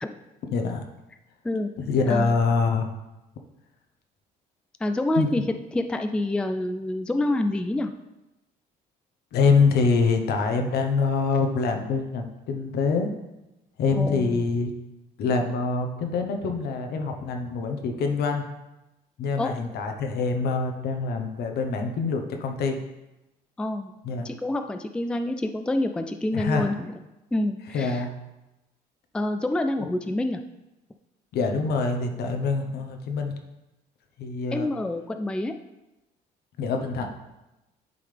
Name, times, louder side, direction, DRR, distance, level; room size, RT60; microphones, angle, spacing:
voice 1, 0.5-0.8 1.9-2.9 5.2-5.3 9.3-13.1 13.8-14.7 15.2-18.4 19.2-22.8 24.0-24.3 26.3-26.7 27.7-28.1 31.3-33.3 34.2-34.7 36.6-37.1, left 4 dB, 70° left, 4 dB, 1.0 m, -25 dB
voice 2, 4.8-7.9 14.0-14.5 19.4-19.6 23.6-23.9 24.2-27.0 27.3-28.0 29.1-30.4 34.5-35.5, left 1 dB, 5° left, 7 dB, 0.3 m, -27 dB
10.5 x 3.9 x 3.4 m, 0.97 s
cardioid pair, 110°, 17 cm